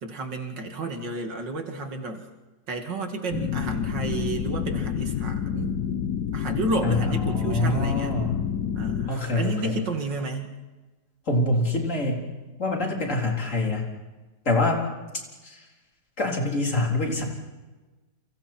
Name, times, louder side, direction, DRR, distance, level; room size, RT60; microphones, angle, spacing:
voice 1, 0.0-2.2 2.7-5.7 6.3-8.2 8.7-10.6, right 2 dB, 75° right, 4 dB, 3.0 m, -31 dB
sound 1, 3.3-9.1, left 8 dB, 70° left, 1.5 m, -28 dB
voice 2, 6.8-8.5 9.1-9.8 11.3-12.2 12.6-13.9 14.4-14.8 15.4-15.7 16.2-17.2, left 2 dB, 40° left, 0 dB, 4.3 m, -25 dB
29.5 x 28.0 x 4.5 m, 1.2 s
omnidirectional pair, 1.9 m